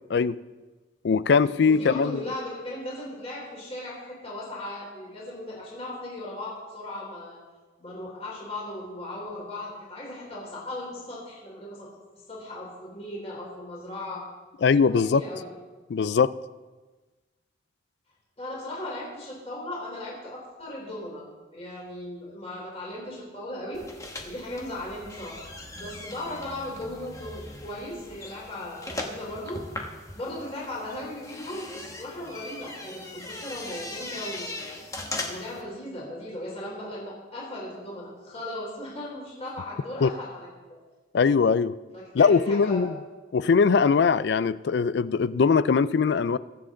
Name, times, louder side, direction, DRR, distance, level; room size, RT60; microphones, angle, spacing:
voice 1, 1.0-2.2 14.6-15.2 15.9-16.3 40.0-40.1 41.1-41.8 42.1-42.9 43.3-46.4, left 5 dB, 60° left, 17 dB, 0.3 m, -21 dB
voice 2, 1.6-7.4 7.8-11.9 12.3-14.2 14.8-15.5 18.4-21.2 21.5-23.8 24.2-25.4 25.7-29.6 30.1-34.8 35.3-40.5 41.9-42.9, left 1 dB, 30° left, -5 dB, 3.8 m, -37 dB
sound 1, 23.7-35.6, left 2 dB, 15° left, 1.2 m, -39 dB
22.5 x 7.6 x 3.8 m, 1.3 s
head